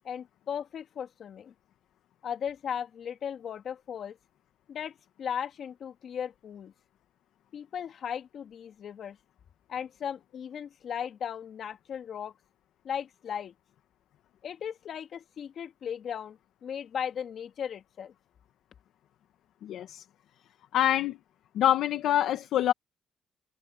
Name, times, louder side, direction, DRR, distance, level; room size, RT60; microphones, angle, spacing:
voice 1, 0.0-1.5 2.2-4.2 4.7-6.7 7.5-9.2 9.7-12.3 12.8-13.5 14.4-18.1, left 8 dB, 60° left, 2.6 m, -37 dB
voice 2, 19.6-20.0 20.7-21.2 21.5-22.7, left 12 dB, 80° left, 1.5 m, -25 dB
cardioid pair, 90°, 0 cm